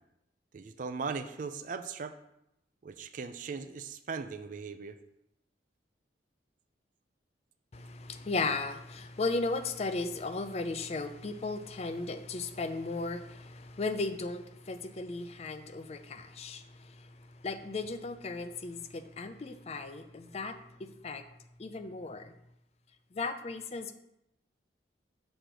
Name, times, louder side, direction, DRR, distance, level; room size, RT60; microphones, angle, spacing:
voice 1, 0.5-2.1 2.8-4.9, right 5 dB, 45° right, 10 dB, 0.4 m, -38 dB
voice 2, 7.7-21.3 21.6-22.3 23.1-23.9, left 3 dB, 35° left, 10 dB, 0.4 m, -36 dB
6.2 x 4.6 x 5.1 m, 0.83 s
head